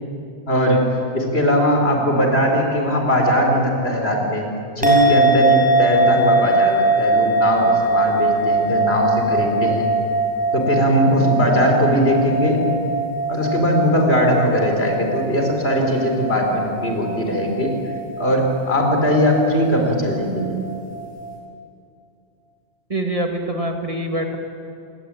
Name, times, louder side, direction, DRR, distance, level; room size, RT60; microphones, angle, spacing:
voice 1, 0.5-0.8 1.1-4.4 4.7-9.9 10.5-12.6 13.3-17.7 18.2-20.6, equal, 65° left, 2 dB, 4.8 m, -19 dB
sound 1, 4.8-21.3, right 2 dB, 5° right, 6.3 m, -21 dB
voice 2, 22.9-24.4, right 1 dB, 30° right, 3 dB, 2.3 m, -24 dB
29.0 x 19.5 x 9.2 m, 2.5 s
omnidirectional pair, 1.1 m